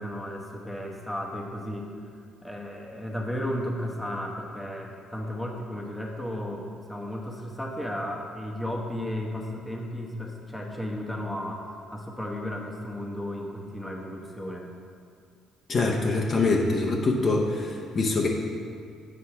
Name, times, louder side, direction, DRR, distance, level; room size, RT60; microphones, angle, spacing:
voice 1, 0.0-1.9 2.4-14.7, left 1 dB, 5° left, -1 dB, 1.0 m, -34 dB
voice 2, 15.7-18.3, left 3 dB, 40° left, -1 dB, 0.8 m, -24 dB
8.2 x 4.2 x 5.8 m, 2.3 s
cardioid pair, 100°, 0 cm